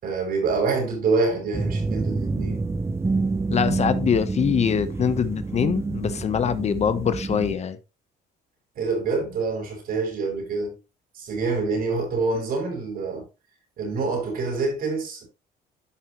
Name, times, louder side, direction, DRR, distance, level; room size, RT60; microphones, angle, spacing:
voice 1, 0.0-2.6 8.7-10.8 11.1-13.3 13.8-15.2, right 4 dB, 60° right, 6.3 m, -26 dB
sound 1, 1.5-7.5, right 3 dB, 15° right, 0.8 m, -27 dB
voice 2, 3.5-7.8, left 7 dB, 40° left, 1.0 m, -23 dB
13.0 x 5.5 x 3.1 m
cardioid pair, 110°, 17 cm